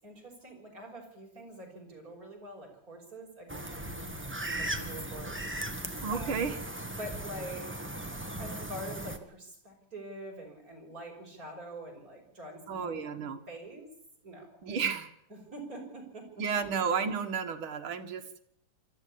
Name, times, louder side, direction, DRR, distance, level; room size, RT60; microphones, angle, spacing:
voice 1, 0.0-5.4 5.6-6.4 7.0-13.1 13.5-13.9 14.2-14.6 15.3-16.3, right 1 dB, 40° right, 1 dB, 6.3 m, -45 dB
sound 1, 3.5-9.2, right 1 dB, 5° right, 1.2 m, -38 dB
voice 2, 6.0-6.6 12.7-13.4 14.6-15.1 16.4-18.2, right 6 dB, 70° right, 6 dB, 2.4 m, -32 dB
26.0 x 13.0 x 8.7 m, 0.72 s
omnidirectional pair, 2.4 m